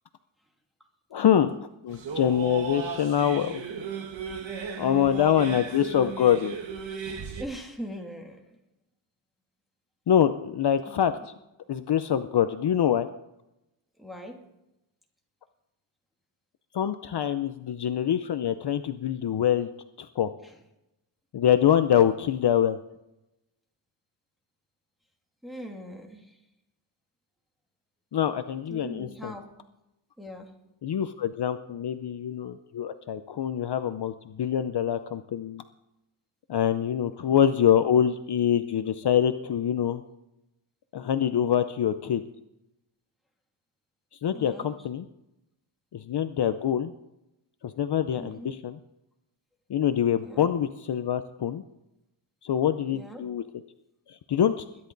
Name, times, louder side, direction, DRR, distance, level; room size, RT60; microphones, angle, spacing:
voice 1, 1.1-1.5 1.8-3.6 4.8-6.6 10.1-11.1 11.7-13.1 16.7-19.7 20.0-20.3 21.3-22.8 28.1-29.3 30.8-35.6 36.5-40.0 40.9-42.2 44.2-45.0 45.9-46.9 47.6-48.8 49.7-51.6 52.4-53.4 54.1-54.6, left 9 dB, 55° left, 10 dB, 0.7 m, -25 dB
sound 1, 1.9-7.4, right 5 dB, 65° right, 1.5 m, -35 dB
voice 2, 7.4-8.6 10.9-11.3 14.0-14.4 20.4-20.6 25.4-26.4 28.7-29.5 30.2-30.5 44.3-44.7 48.2-48.5 50.2-50.5 52.9-53.2, equal, ahead, -1 dB, 2.5 m, -41 dB
21.5 x 10.5 x 4.0 m, 0.90 s
wide cardioid pair, 135°, 48 cm